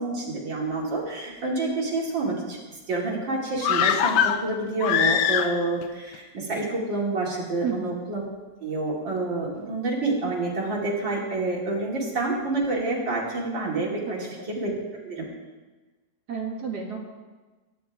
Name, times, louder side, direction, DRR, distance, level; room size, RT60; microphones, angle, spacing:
voice 1, 0.0-2.6 2.9-8.2 8.6-14.7 15.1-15.3, right 2 dB, 80° right, -4 dB, 3.3 m, -28 dB
sound 1, 3.6-5.8 6.1-6.2, left 9 dB, 70° left, 1.3 m, -23 dB
voice 2, 7.6-7.9 14.1-14.5 16.3-17.0, right 5 dB, 60° right, 0 dB, 2.8 m, -32 dB
23.5 x 11.0 x 3.5 m, 1.2 s
omnidirectional pair, 2.0 m